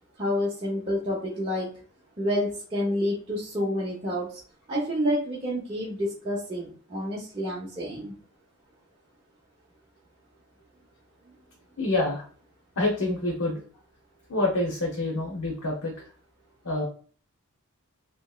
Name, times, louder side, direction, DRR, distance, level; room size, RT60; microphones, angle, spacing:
voice 1, 0.2-1.7 2.2-4.3 4.7-8.1, equal, 25° right, -6 dB, 0.8 m, -29 dB
voice 2, 11.8-12.2 12.8-13.6 14.3-16.1 16.6-16.8, left 2 dB, 80° left, -1 dB, 0.9 m, -27 dB
3.3 x 2.9 x 2.4 m, 0.41 s
head